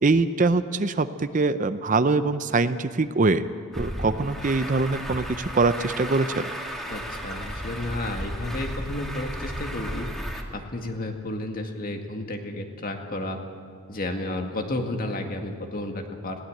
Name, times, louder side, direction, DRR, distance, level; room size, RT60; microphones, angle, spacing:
voice 1, 0.0-3.5 3.7-6.5, right 3 dB, 40° right, 12 dB, 0.6 m, -23 dB
Truck, 3.7-10.4, equal, ahead, 2.0 m, -34 dB
voice 2, 6.9-10.1 10.3-13.4 13.9-16.4, left 1 dB, 45° left, 4 dB, 2.0 m, -32 dB
20.5 x 16.5 x 7.8 m, 2.3 s
head